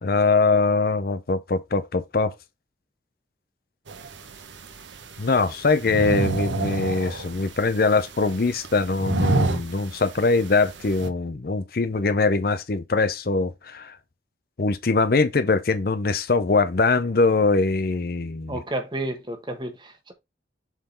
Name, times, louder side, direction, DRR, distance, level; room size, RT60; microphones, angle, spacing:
voice 1, 0.0-2.3 5.2-14.0 14.6-18.6, left 3 dB, 55° left, 0.6 m, -22 dB
sound 1, 3.9-11.1, right 3 dB, 90° right, 0.8 m, -30 dB
voice 2, 18.5-20.1, right 1 dB, 25° right, 1.2 m, -31 dB
7.3 x 3.8 x 3.8 m
head